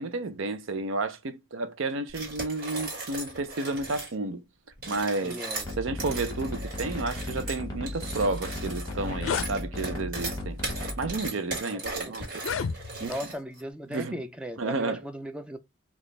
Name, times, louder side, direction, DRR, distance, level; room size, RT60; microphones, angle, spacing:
voice 1, 0.0-4.4 4.9-5.4 5.8-10.6 11.0-12.6 13.0-13.2 13.9-14.2 14.6-15.0, right 3 dB, 75° right, 0.6 m, -31 dB
sound 1, 2.1-4.1 4.7-13.6, right 2 dB, 45° right, 1.6 m, -38 dB
voice 2, 5.2-5.6 11.7-12.1 13.0-15.6, equal, 5° right, 0.4 m, -37 dB
sound 2, 5.6-11.1, left 1 dB, 20° left, 1.1 m, -36 dB
sound 3, 8.4-8.5 8.8-9.5 10.4-10.6 11.3-11.4 12.3-13.2, left 6 dB, 80° left, 0.4 m, -32 dB
4.0 x 2.4 x 3.2 m
head